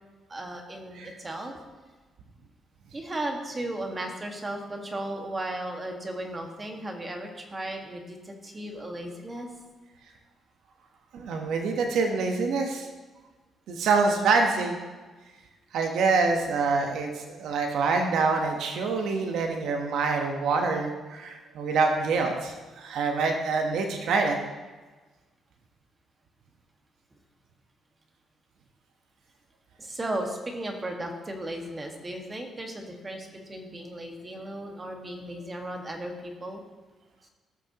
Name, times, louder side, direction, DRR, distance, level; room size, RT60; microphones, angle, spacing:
voice 1, 0.3-1.6 2.9-9.5 29.8-36.6, right 1 dB, 25° right, 2 dB, 1.6 m, -35 dB
voice 2, 11.1-12.9 13.7-14.7 15.7-24.4, right 4 dB, 80° right, 3 dB, 1.1 m, -26 dB
16.0 x 6.6 x 2.9 m, 1.3 s
cardioid pair, 90°, 0 cm